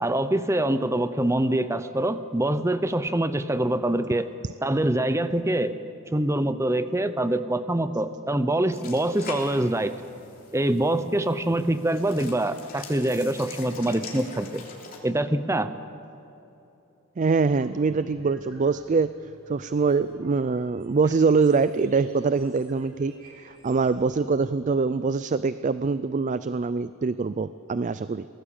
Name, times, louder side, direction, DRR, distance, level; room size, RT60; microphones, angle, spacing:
voice 1, 0.0-4.3 4.6-5.8 6.1-10.0 10.5-14.6 15.0-15.8, right 1 dB, 15° right, 12 dB, 0.7 m, -25 dB
sound 1, 8.7-15.0, left 4 dB, 40° left, 3.4 m, -43 dB
voice 2, 17.2-19.1 19.5-23.1 23.4-28.3, right 4 dB, 35° right, 14 dB, 0.4 m, -24 dB
sound 2, 17.4-24.1, right 2 dB, 70° right, 4.1 m, -50 dB
23.5 x 18.5 x 7.2 m, 2.9 s
head